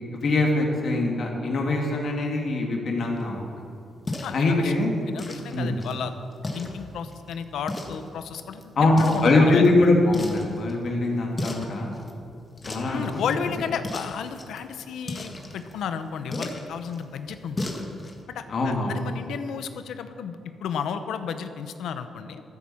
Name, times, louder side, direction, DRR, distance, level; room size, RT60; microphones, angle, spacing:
voice 1, 0.1-3.5 4.3-4.9 5.5-5.8 8.8-8.9 9.2-11.9 12.7-13.1 18.5-19.0, left 2 dB, 55° left, 0 dB, 2.7 m, -22 dB
sound 1, 3.0-18.2, left 2 dB, 25° left, 1.6 m, -38 dB
voice 2, 4.2-4.7 5.1-6.1 6.5-9.7 12.9-17.8 18.3-22.4, left 7 dB, 90° left, 10 dB, 0.9 m, -33 dB
13.5 x 9.8 x 7.2 m, 2.5 s
cardioid pair, 125°, 0 cm